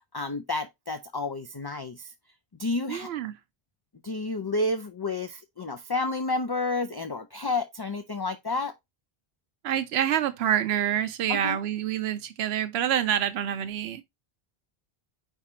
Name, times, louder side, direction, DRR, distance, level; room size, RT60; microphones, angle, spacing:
voice 1, 0.1-2.1 2.6-3.1 4.0-8.7 11.3-11.6, left 2 dB, 35° left, 0.4 m, -30 dB
voice 2, 2.9-3.4 9.6-14.0, right 10 dB, 90° right, 0.8 m, -27 dB
4.9 x 4.6 x 4.3 m
omnidirectional pair, 1.0 m